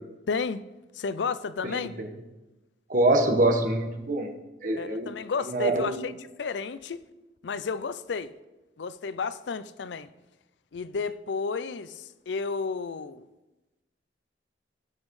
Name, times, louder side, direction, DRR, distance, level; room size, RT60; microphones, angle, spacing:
voice 1, 0.3-0.6 0.9-1.9 4.8-7.0 7.4-8.3 8.8-10.1 10.7-13.2, left 5 dB, 75° left, 0.5 m, -32 dB
voice 2, 1.7-2.1 2.9-4.3 4.6-5.1 5.5-6.0, right 2 dB, 45° right, 1.3 m, -24 dB
19.0 x 7.4 x 3.2 m
head